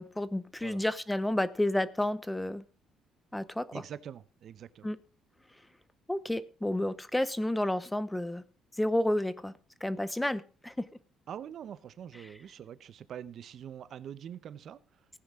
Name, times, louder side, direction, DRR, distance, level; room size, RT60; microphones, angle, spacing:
voice 1, 0.0-2.6 3.3-3.8 4.8-5.0 6.1-8.4 8.8-9.5 9.8-10.8, left 1 dB, 5° left, 0.7 m, -31 dB
voice 2, 3.7-4.9 11.3-14.8, right 9 dB, 55° right, 0.7 m, -44 dB
16.0 x 9.5 x 3.6 m
cardioid pair, 115°, 0 cm